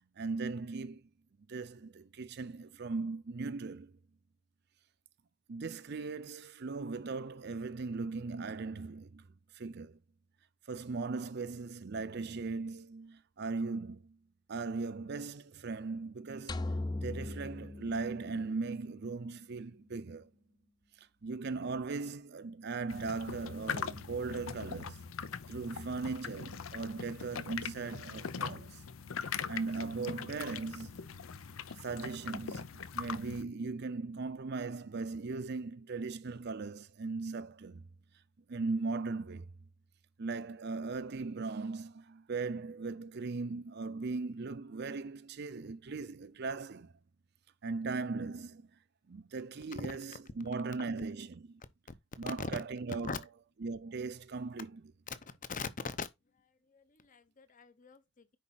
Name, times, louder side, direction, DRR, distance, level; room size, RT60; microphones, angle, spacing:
voice 1, 0.2-1.0 1.5-3.9 5.5-9.3 9.5-10.0 10.7-14.2 14.5-20.3 21.0-25.0 25.5-28.8 29.5-31.2 31.8-37.8 38.5-39.5 40.2-46.9 47.6-48.7 49.1-51.6 52.2-53.2 53.6-54.8, right 4 dB, 55° right, 0.5 m, -38 dB
sound 1, 16.5-18.8, left 2 dB, 20° left, 0.4 m, -38 dB
sound 2, 22.9-33.4, left 6 dB, 90° left, 0.6 m, -41 dB
voice 2, 55.1-56.1 56.7-58.4, left 4 dB, 40° left, 0.8 m, -41 dB
10.0 x 4.2 x 4.0 m
head